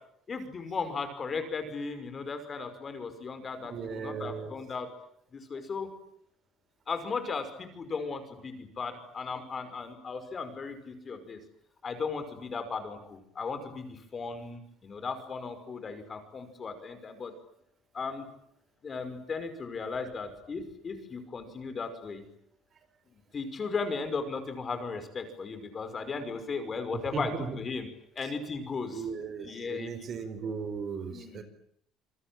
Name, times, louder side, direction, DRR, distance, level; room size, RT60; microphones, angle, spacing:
voice 1, 0.3-4.9 5.3-5.9 6.9-11.4 11.8-17.3 17.9-18.3 18.8-22.2 23.3-27.9 28.2-29.1 29.4-29.9 31.1-31.4, left 4 dB, 25° left, 9 dB, 5.5 m, -36 dB
voice 2, 3.7-4.5 27.1-27.6 28.9-31.4, right 6 dB, 40° right, 11 dB, 4.4 m, -37 dB
27.5 x 23.0 x 8.9 m, 0.71 s
cardioid pair, 155°, 0 cm